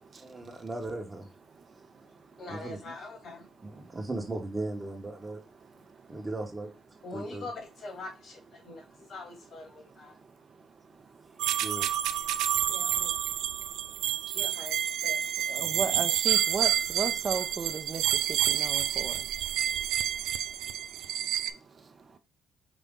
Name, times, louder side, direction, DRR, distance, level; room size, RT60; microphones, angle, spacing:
voice 1, 0.2-1.3 2.5-2.9 3.6-5.4 6.1-6.7 7.1-7.5 10.9-11.0 11.6-11.9 15.6-16.1, right 2 dB, 25° right, 1.2 m, -37 dB
voice 2, 2.4-3.5 7.0-10.1 12.7-13.2 14.3-14.8 15.0-15.3, left 2 dB, 55° left, 2.0 m, -43 dB
sound 1, 11.4-21.5, right 11 dB, 90° right, 0.3 m, -29 dB
voice 3, 15.5-18.0 18.5-19.1, right 5 dB, 40° right, 0.8 m, -34 dB
5.1 x 2.8 x 3.6 m
cardioid pair, 90°, 0 cm